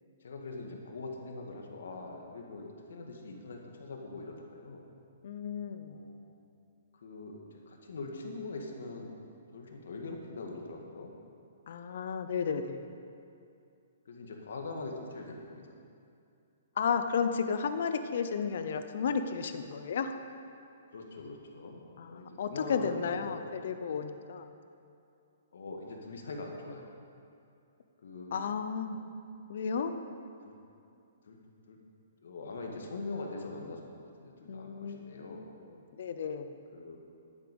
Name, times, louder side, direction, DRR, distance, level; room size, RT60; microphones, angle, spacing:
voice 1, 0.2-4.8 5.9-6.3 6.9-9.1 9.5-11.1 14.0-15.7 20.9-21.8 22.1-23.5 25.5-26.9 28.0-28.4 30.4-30.5 31.3-31.4 31.7-31.8 32.2-35.5 36.7-37.0, left 3 dB, 70° left, 1 dB, 1.7 m, -42 dB
voice 2, 5.2-6.0 11.7-12.9 16.8-20.2 22.0-24.5 28.3-29.0 29.5-29.9 34.5-35.5 35.9-36.5, left 6 dB, 45° left, 9 dB, 0.6 m, -33 dB
11.5 x 8.3 x 5.3 m, 2.5 s
hypercardioid pair, 180°, 0 cm